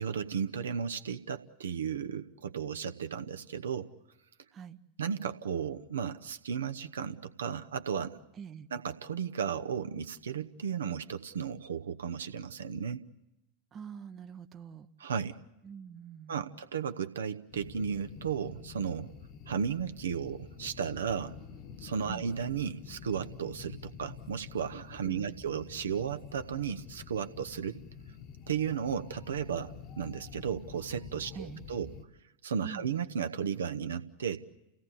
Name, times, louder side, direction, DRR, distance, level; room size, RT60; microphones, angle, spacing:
voice 1, 0.0-3.9 5.0-8.2 8.7-13.0 15.0-15.4 16.3-19.1 19.5-21.4 21.8-27.8 28.5-31.9 32.4-34.4, right 7 dB, 65° right, 9 dB, 1.0 m, -34 dB
voice 2, 8.3-8.7 13.7-14.9 15.6-16.6 22.1-22.3 25.0-25.4 31.3-31.7 32.6-33.0, right 7 dB, 25° right, 9 dB, 0.8 m, -45 dB
sound 1, 17.5-32.0, left 7 dB, 35° left, 1.2 m, -48 dB
29.5 x 17.0 x 8.4 m, 0.94 s
figure-of-eight pair, 90°, 0 cm